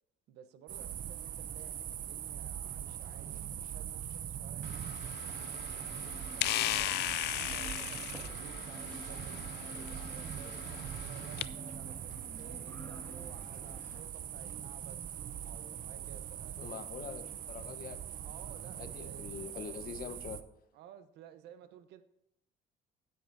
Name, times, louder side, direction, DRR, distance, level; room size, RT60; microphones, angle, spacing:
voice 1, 0.3-7.0 7.3-16.8 18.1-19.9 20.7-22.0, right 9 dB, 80° right, 11 dB, 1.0 m, -55 dB
sound 1, 0.7-20.4, right 10 dB, 55° right, 0.7 m, -42 dB
sound 2, 4.6-11.5, left 16 dB, 80° left, 0.4 m, -38 dB
sound 3, 5.2-14.0, left 1 dB, 10° left, 2.0 m, -51 dB
voice 2, 16.6-18.0 18.8-20.4, left 8 dB, 60° left, 9 dB, 1.2 m, -44 dB
17.5 x 8.1 x 2.7 m, 0.83 s
cardioid pair, 110°, 17 cm